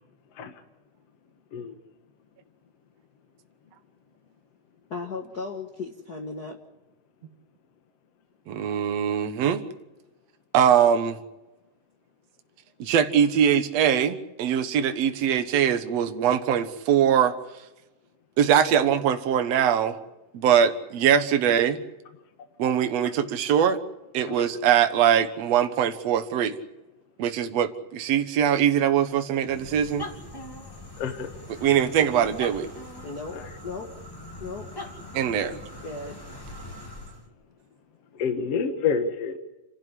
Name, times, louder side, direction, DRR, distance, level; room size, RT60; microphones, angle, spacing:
voice 1, 4.9-6.6 33.0-33.9 34.4-34.7 35.5-35.6 35.8-36.2, left 4 dB, 40° left, 2 dB, 1.8 m, -36 dB
voice 2, 8.5-9.6 10.5-11.2 12.8-17.4 18.4-20.0 20.3-21.8 22.6-23.8 24.1-26.6 27.2-30.1 31.5-32.7 35.1-35.6, right 9 dB, 65° right, 8 dB, 2.4 m, -22 dB
sound 1, 29.4-37.3, left 1 dB, 10° left, 2.7 m, -41 dB
voice 3, 31.0-31.3 33.3-33.4 38.2-39.4, left 6 dB, 60° left, 6 dB, 2.4 m, -27 dB
29.5 x 12.5 x 9.9 m, 1.0 s
omnidirectional pair, 3.3 m